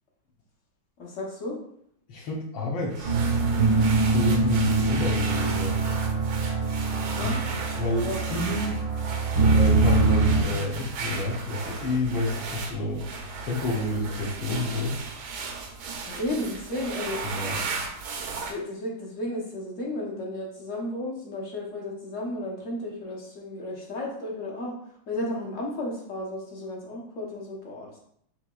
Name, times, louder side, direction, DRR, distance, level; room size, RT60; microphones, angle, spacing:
voice 1, 1.0-1.6 7.0-7.4 8.0-8.2 16.1-17.2 18.4-24.7 25.1-27.9, left 1 dB, 50° left, -2 dB, 1.2 m, -33 dB
voice 2, 2.1-3.2 4.0-5.8 7.2-7.3 7.7-8.7 9.4-13.0 13.4-15.0 17.2-17.6, left 2 dB, 80° left, -5 dB, 1.6 m, -29 dB
sound 1, 2.9-18.5, right 4 dB, 70° right, 1.1 m, -36 dB
sound 2, 3.0-10.4, right 4 dB, 90° right, 2.1 m, -24 dB
6.6 x 2.9 x 2.3 m, 0.69 s
omnidirectional pair, 2.0 m